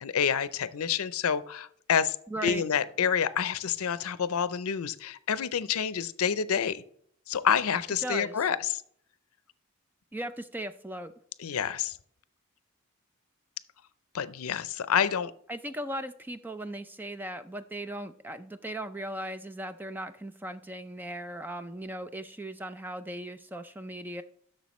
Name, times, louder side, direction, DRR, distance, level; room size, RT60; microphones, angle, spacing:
voice 1, 0.0-2.2 2.4-6.8 7.3-8.8 11.4-12.0 14.1-15.3, left 7 dB, 90° left, 15 dB, 0.5 m, -28 dB
voice 2, 2.3-2.6 8.0-8.4 10.1-11.1 15.5-24.2, right 1 dB, 10° right, 10 dB, 0.4 m, -38 dB
Fireworks, 2.4-5.5, right 4 dB, 85° right, 0.5 m, -47 dB
11.0 x 6.5 x 3.1 m, 0.64 s
head